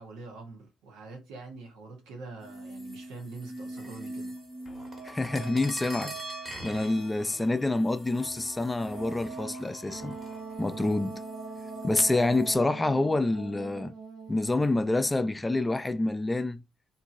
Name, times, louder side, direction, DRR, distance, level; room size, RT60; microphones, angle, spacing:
voice 1, 0.0-4.3, right 3 dB, 80° right, 1.0 m, -44 dB
sound 1, 2.4-12.5, right 2 dB, 35° right, 1.5 m, -42 dB
sound 2, 4.6-10.4, left 4 dB, 50° left, 0.8 m, -55 dB
voice 2, 5.0-6.2 6.6-10.2 10.6-11.2 11.8-13.9 14.3-16.6, left 2 dB, 20° left, 0.4 m, -27 dB
Wind instrument woodwind instrument, 9.9-15.4, right 4 dB, 55° right, 0.9 m, -42 dB
2.9 x 2.6 x 2.6 m
hypercardioid pair, 50°, 0 cm